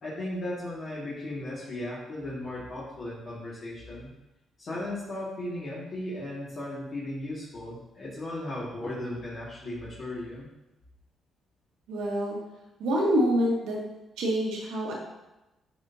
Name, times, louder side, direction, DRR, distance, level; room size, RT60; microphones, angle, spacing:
voice 1, 0.0-4.1 4.6-10.5, left 1 dB, 50° left, -8 dB, 2.2 m, -36 dB
voice 2, 11.9-12.4 12.8-13.8 14.2-14.9, equal, 90° right, -2 dB, 1.8 m, -26 dB
11.0 x 4.4 x 2.8 m, 0.96 s
cardioid pair, 90°, 0 cm